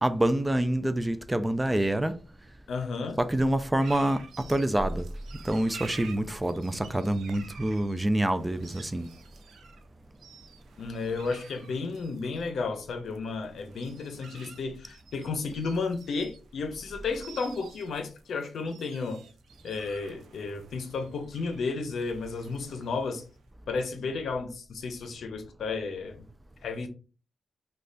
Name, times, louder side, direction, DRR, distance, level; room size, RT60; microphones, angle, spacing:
voice 1, 0.0-2.2 3.2-5.1 5.4-9.1, right 1 dB, 15° right, 0.3 m, -26 dB
voice 2, 2.7-3.2 10.8-19.2 19.6-23.2 23.7-26.2 26.6-26.9, left 4 dB, 75° left, 0.6 m, -33 dB
sound 1, 3.8-23.5, right 5 dB, 85° right, 0.5 m, -51 dB
3.2 x 2.3 x 3.8 m
wide cardioid pair, 110°, 0 cm